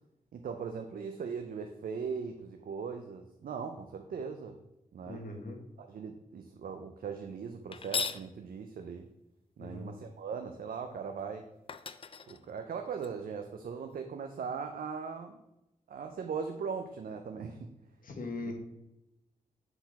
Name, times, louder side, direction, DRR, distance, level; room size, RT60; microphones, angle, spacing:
voice 1, 0.3-4.5 4.9-5.2 5.8-9.1 9.6-11.5 12.3-15.4 15.9-17.7 18.4-18.5, right 6 dB, 80° right, 5 dB, 0.6 m, -39 dB
voice 2, 5.1-5.6 9.6-9.9 18.0-18.5, left 2 dB, 70° left, 2 dB, 1.5 m, -40 dB
sound 1, 7.7-8.3 11.2-11.3 11.7-13.1, left 5 dB, 40° left, 0.4 m, -37 dB
6.9 x 4.0 x 4.1 m, 0.90 s
cardioid pair, 70°, 15 cm